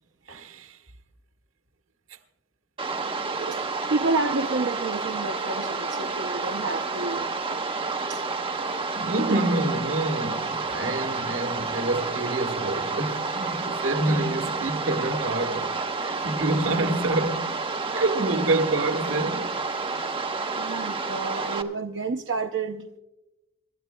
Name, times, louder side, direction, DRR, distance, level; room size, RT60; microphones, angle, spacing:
voice 1, 0.3-0.8 8.9-15.7 16.0-17.5 17.9-19.5, right 2 dB, 85° right, 1.3 m, -27 dB
sound 1, 2.8-21.6, right 4 dB, 25° right, 0.9 m, -30 dB
voice 2, 3.4-7.3 8.1-8.2 8.6-8.9 20.6-22.9, right 3 dB, 65° right, 0.6 m, -30 dB
27.5 x 12.5 x 2.2 m
head